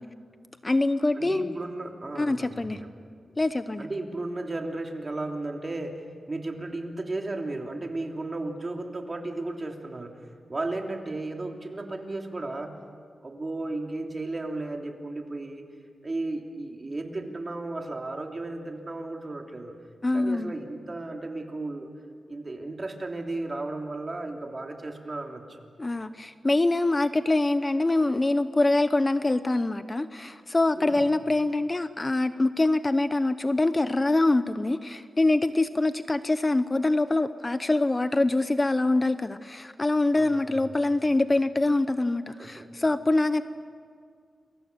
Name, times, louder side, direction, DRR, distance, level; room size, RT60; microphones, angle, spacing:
voice 1, 0.6-1.5 2.2-2.8 3.4-3.9 20.0-20.5 25.8-43.4, left 2 dB, 25° left, 12 dB, 0.8 m, -24 dB
voice 2, 1.1-2.9 3.8-10.2 10.5-12.8 13.2-15.6 16.0-19.8 20.1-21.9 22.3-25.6 30.7-31.1 40.1-40.7 42.3-42.7, right 2 dB, 35° right, 2 dB, 3.1 m, -34 dB
29.0 x 23.5 x 6.9 m, 2.1 s
cardioid pair, 75°, 0 cm